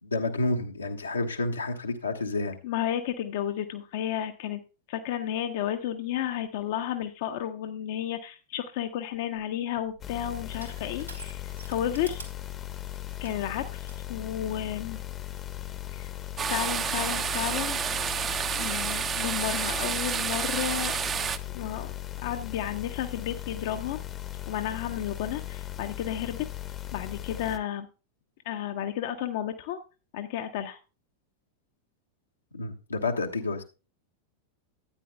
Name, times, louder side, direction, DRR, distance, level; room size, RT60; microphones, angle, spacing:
voice 1, 0.0-2.6 32.5-33.6, left 2 dB, 80° left, 1.3 m, -29 dB
voice 2, 2.6-4.6 4.9-12.2 13.2-15.0 15.9-16.1 16.4-17.8 18.6-21.0 21.5-21.9 22.2-24.0 24.5-26.5 26.9-27.9 28.4-29.8 30.1-30.8, left 10 dB, 50° left, 0.8 m, -32 dB
Crushing, 9.1-14.0, right 3 dB, 85° right, 2.2 m, -49 dB
sound 1, 10.0-27.6, left 14 dB, 25° left, 0.9 m, -38 dB
sound 2, 16.4-21.4, right 7 dB, 25° right, 0.7 m, -30 dB
13.5 x 9.3 x 2.2 m
figure-of-eight pair, 90°, 0 cm